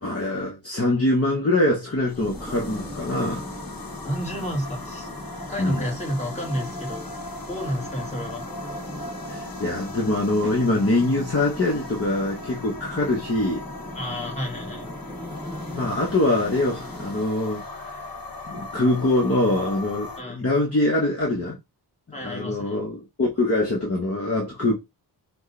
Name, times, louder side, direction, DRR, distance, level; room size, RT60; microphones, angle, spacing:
voice 1, 0.0-3.4 5.6-5.8 9.3-13.6 15.7-18.0 18.5-21.6 22.2-24.7, left 2 dB, 35° left, 1.1 m, -24 dB
sound 1, 1.9-20.2, left 2 dB, 60° left, 1.1 m, -38 dB
sound 2, 2.2-17.2, equal, 5° right, 0.8 m, -40 dB
voice 2, 4.0-5.1 5.5-7.1 7.5-8.4 13.9-14.9 20.2-20.4 22.1-22.8, equal, 15° left, 1.9 m, -30 dB
6.3 x 2.4 x 3.2 m
wide cardioid pair, 115°, 40 cm